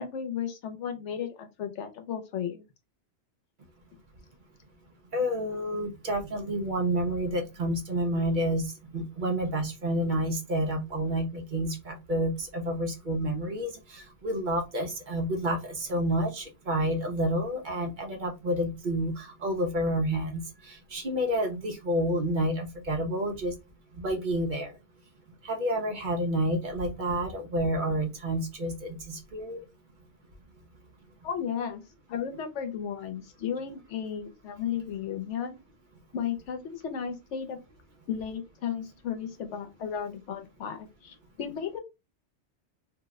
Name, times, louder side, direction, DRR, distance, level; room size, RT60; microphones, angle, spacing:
voice 1, 0.0-2.7 31.2-31.8 32.1-35.5 36.1-37.6 38.1-41.8, left 8 dB, 80° left, 7 dB, 1.0 m, -34 dB
voice 2, 5.1-8.7 8.9-20.4 20.7-23.5 24.0-24.7 25.4-29.6, right 1 dB, 50° right, 3 dB, 0.7 m, -29 dB
2.6 x 2.0 x 3.5 m, 0.25 s
omnidirectional pair, 1.2 m